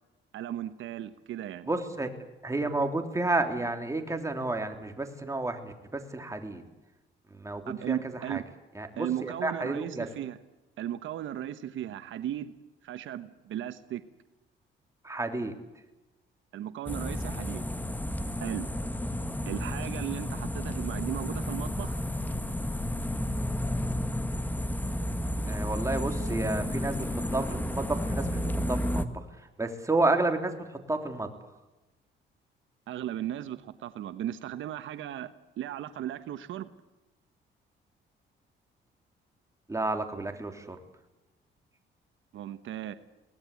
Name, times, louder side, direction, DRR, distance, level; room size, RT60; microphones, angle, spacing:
voice 1, 0.3-1.7 7.7-8.4 9.0-10.4 10.8-12.5 12.8-14.0 16.5-17.7 18.4-18.7 19.4-22.0 32.9-36.7 42.3-42.9, right 11 dB, 80° right, 11 dB, 1.2 m, -36 dB
voice 2, 1.7-2.1 2.4-6.6 7.3-8.0 8.3-8.4 8.7-10.1 15.0-15.6 25.5-29.0 29.6-30.6 30.9-31.3 39.7-40.8, right 2 dB, 15° right, 5 dB, 3.4 m, -31 dB
sound 1, 16.9-29.1, left 1 dB, 10° left, 1.7 m, -32 dB
23.5 x 18.5 x 8.4 m, 1.0 s
cardioid pair, 90°, 20 cm